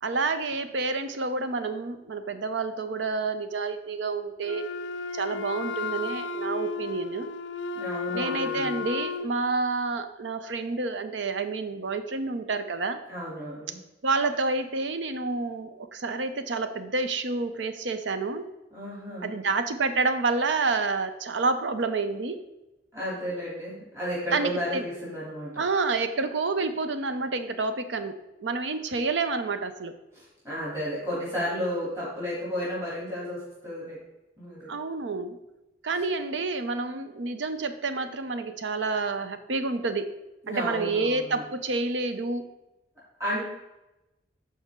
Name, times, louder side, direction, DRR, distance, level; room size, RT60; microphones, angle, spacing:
voice 1, 0.0-4.7 5.1-7.3 8.1-13.0 14.0-18.5 19.2-22.4 24.3-24.9 25.6-28.1 28.4-30.0 34.7-35.4 35.8-40.1 40.5-42.4, right 3 dB, 90° right, 9 dB, 0.7 m, -29 dB
Wind instrument woodwind instrument, 4.4-9.3, left 5 dB, 85° left, 0.4 m, -33 dB
voice 2, 7.7-8.9 13.1-13.8 18.7-19.3 22.9-25.6 30.1-34.0 34.4-34.7 40.4-41.4 43.2-43.4, equal, 15° right, -9 dB, 3.2 m, -33 dB
12.0 x 4.3 x 3.7 m, 0.96 s
head